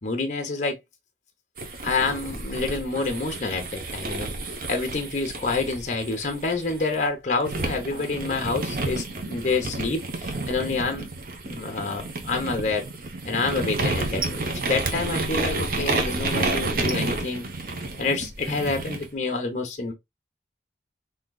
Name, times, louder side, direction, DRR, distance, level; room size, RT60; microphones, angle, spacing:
voice 1, 0.0-0.8 1.8-4.3 4.7-11.1 11.4-12.9 13.2-17.4 18.0-19.9, left 3 dB, 40° left, 0.7 m, -28 dB
sound 1, 1.6-7.0 7.5-19.1, right 2 dB, 50° right, 0.7 m, -30 dB
3.6 x 2.7 x 2.2 m
head